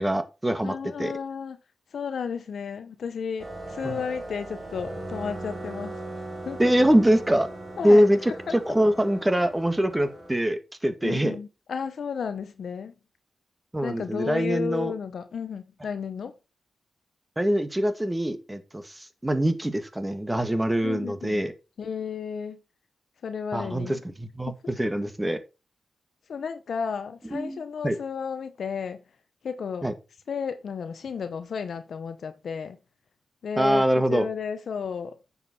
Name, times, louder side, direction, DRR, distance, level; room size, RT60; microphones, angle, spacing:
voice 1, 0.0-1.1 3.8-4.0 6.6-7.5 7.8-11.4 13.7-14.9 17.4-21.5 23.5-25.4 27.3-28.0 29.8-29.9 33.6-34.3, equal, 15° right, 1.9 m, -24 dB
voice 2, 0.6-1.6 1.9-6.0 6.4-6.8 7.8-8.6 11.0-12.9 13.8-16.3 20.8-21.4 21.8-22.6 23.2-24.0 24.4-24.5 26.3-29.0 29.4-29.9 30.3-32.8 33.4-35.2, left 6 dB, 75° left, 0.8 m, -33 dB
sound 1, 3.4-10.4, right 2 dB, 45° right, 3.8 m, -39 dB
9.5 x 7.3 x 4.3 m
cardioid pair, 60°, 0 cm